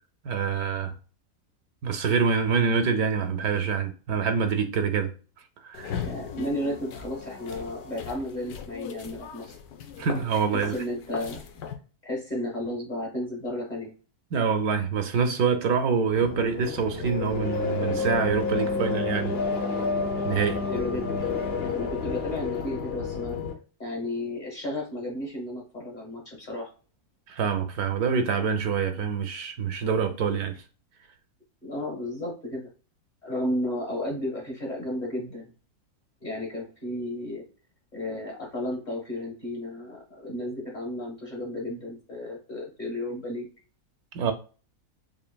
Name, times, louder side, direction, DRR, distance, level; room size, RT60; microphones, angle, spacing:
voice 1, 0.2-0.9 1.8-5.1 5.6-6.0 10.0-10.7 14.3-19.4 20.2-20.6 27.3-30.6 44.1-44.3, right 6 dB, 75° right, 1.1 m, -26 dB
sound 1, 5.7-11.8, left 7 dB, 85° left, 1.2 m, -39 dB
voice 2, 6.0-9.6 10.5-11.4 12.0-13.9 20.6-21.1 21.7-23.4 23.8-26.7 31.6-32.7 33.2-35.5 36.2-37.4 37.9-43.5, left 1 dB, 30° left, 1.3 m, -33 dB
sound 2, 16.1-23.5, left 4 dB, 55° left, 0.8 m, -29 dB
5.1 x 2.7 x 2.2 m
omnidirectional pair, 1.6 m